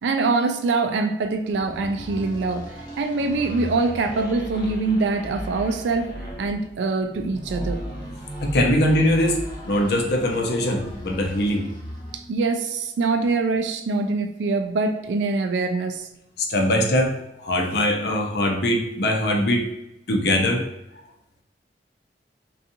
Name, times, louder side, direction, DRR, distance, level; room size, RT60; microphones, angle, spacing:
voice 1, 0.0-6.1 6.4-7.8 12.1-16.1, right 3 dB, 85° right, 8 dB, 0.3 m, -24 dB
sound 1, 1.5-12.3, equal, 25° left, 0.8 m, -36 dB
voice 2, 8.4-11.7 16.4-19.7 20.1-20.7, left 1 dB, 65° left, 2 dB, 0.5 m, -22 dB
2.7 x 2.3 x 2.6 m, 0.88 s
head